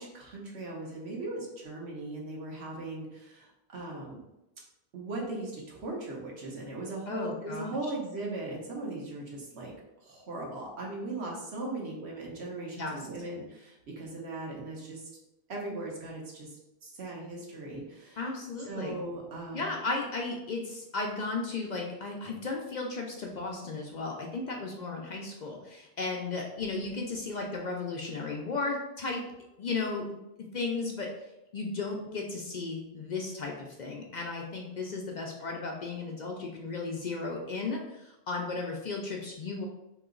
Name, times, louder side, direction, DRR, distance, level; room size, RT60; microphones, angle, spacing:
voice 1, 0.0-4.2 4.9-9.7 10.0-15.1 15.5-18.3 18.6-19.7, right 2 dB, 80° right, -2 dB, 1.2 m, -38 dB
voice 2, 7.1-7.7 12.8-13.0 18.2-19.0 19.5-29.2 29.6-30.2 30.5-31.1 31.5-39.7, left 3 dB, 55° left, 0 dB, 0.5 m, -35 dB
3.0 x 2.9 x 3.7 m, 0.91 s
omnidirectional pair, 1.1 m